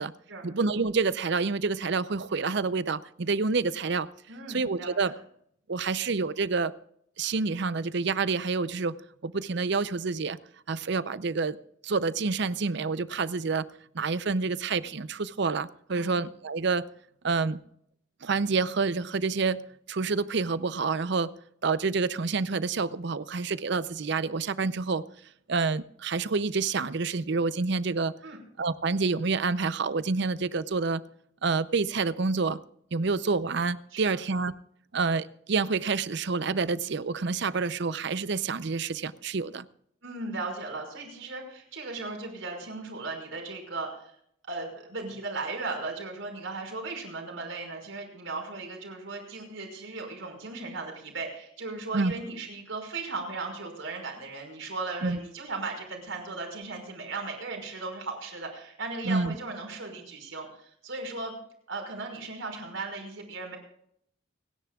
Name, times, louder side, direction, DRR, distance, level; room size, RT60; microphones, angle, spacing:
voice 1, 0.4-4.1 4.5-5.1 5.7-6.7 7.2-8.9 9.2-10.4 10.7-11.6 11.8-13.7 13.9-16.8 17.2-17.6 18.2-19.6 19.9-21.3 21.6-25.0 25.5-28.1 28.6-31.0 31.4-32.6 32.9-34.5 34.9-39.7 51.9-52.1 55.0-55.2 59.0-59.3, right 4 dB, 60° right, 15 dB, 0.6 m, -28 dB
voice 2, 4.3-4.9 15.9-16.2 28.2-28.4 33.9-34.2 40.0-44.1 44.5-61.3 61.7-63.6, right 3 dB, 80° right, 1 dB, 5.5 m, -37 dB
30.0 x 10.5 x 2.4 m, 0.68 s
head